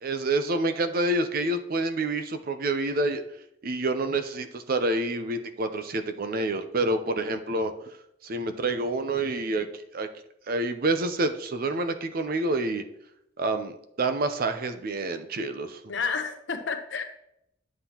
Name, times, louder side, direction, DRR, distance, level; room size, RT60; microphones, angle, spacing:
voice 1, 0.0-3.2 3.6-7.7 8.2-10.1 10.5-12.8 13.4-15.9, right 2 dB, 50° right, 8 dB, 0.6 m, -28 dB
voice 2, 15.9-17.0, left 5 dB, 65° left, 7 dB, 0.9 m, -30 dB
9.8 x 7.3 x 2.9 m, 0.80 s
head